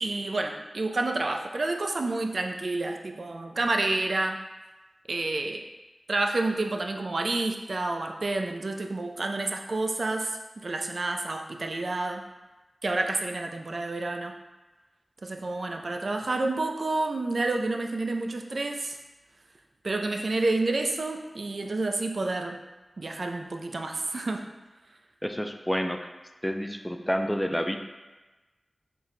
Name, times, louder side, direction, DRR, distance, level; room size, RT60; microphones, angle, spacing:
voice 1, 0.0-4.4 5.1-5.6 6.1-12.2 12.8-14.4 15.2-19.0 19.8-22.6 23.0-24.5, right 2 dB, 70° right, 3 dB, 0.3 m, -29 dB
voice 2, 25.2-26.0 26.4-27.8, equal, 5° left, 5 dB, 0.3 m, -29 dB
4.4 x 2.1 x 3.8 m, 1.2 s
wide cardioid pair, 60°, 0 cm